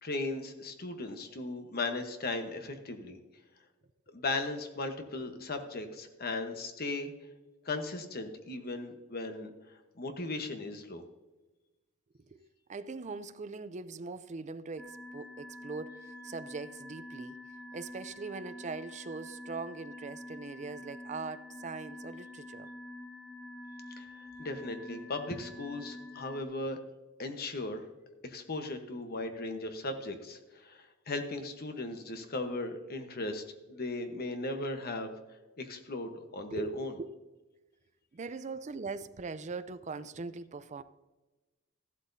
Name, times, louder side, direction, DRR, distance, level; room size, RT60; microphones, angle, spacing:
voice 1, 0.0-3.2 4.1-7.1 7.6-11.0 24.0-24.1 24.4-26.8 27.2-27.8 28.2-35.1 35.6-36.9, left 2 dB, 45° left, 1.1 m, -37 dB
voice 2, 12.7-17.4 17.7-22.7 36.5-37.1 38.1-40.8, right 4 dB, 35° right, 0.5 m, -41 dB
sound 1, 14.8-26.4, left 1 dB, ahead, 0.7 m, -47 dB
14.0 x 11.5 x 2.7 m
head